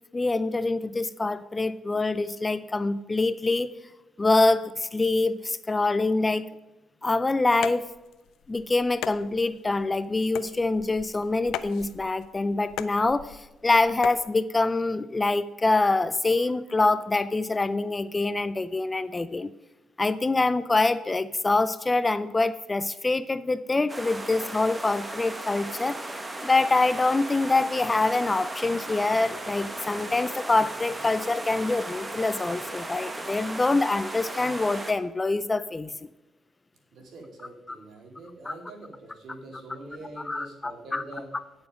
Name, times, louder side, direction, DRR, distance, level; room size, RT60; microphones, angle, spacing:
voice 1, 0.1-3.7 4.2-6.5 7.0-7.8 8.5-19.5 20.0-26.0 26.4-35.9 38.5-38.6 40.3-41.0, left 3 dB, 20° left, 14 dB, 0.4 m, -25 dB
sound 1, 7.5-14.3, left 11 dB, 85° left, 0.4 m, -39 dB
sound 2, 23.9-34.9, right 2 dB, 20° right, 1.1 m, -36 dB
voice 2, 36.9-41.3, right 2 dB, 65° right, 2 dB, 2.5 m, -44 dB
9.6 x 7.0 x 5.1 m, 1.0 s
cardioid pair, 90°, 0 cm